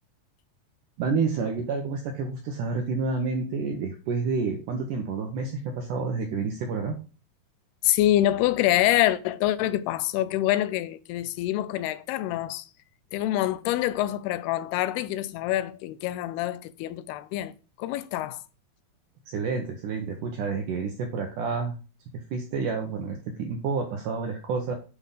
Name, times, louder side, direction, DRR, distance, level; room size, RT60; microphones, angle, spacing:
voice 1, 1.0-7.0 19.3-21.8 22.3-24.8, right 4 dB, 75° right, 1.9 m, -29 dB
voice 2, 7.8-12.7 13.1-17.5 17.8-18.4, left 14 dB, 85° left, 2.6 m, -26 dB
8.3 x 3.4 x 5.5 m
omnidirectional pair, 4.5 m